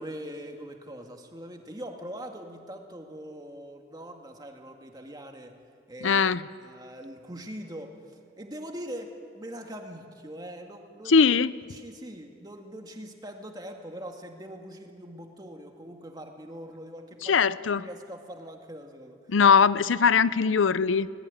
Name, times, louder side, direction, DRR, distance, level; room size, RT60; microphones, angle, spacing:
voice 1, 0.0-5.6 5.9-6.2 6.6-8.0 8.4-11.3 11.7-17.4 17.8-19.2, equal, 20° right, 3 dB, 2.1 m, -42 dB
voice 2, 6.0-6.4 11.1-11.5 17.2-17.9 19.3-21.1, left 6 dB, 90° left, 16 dB, 0.6 m, -21 dB
22.0 x 19.5 x 9.6 m, 2.1 s
head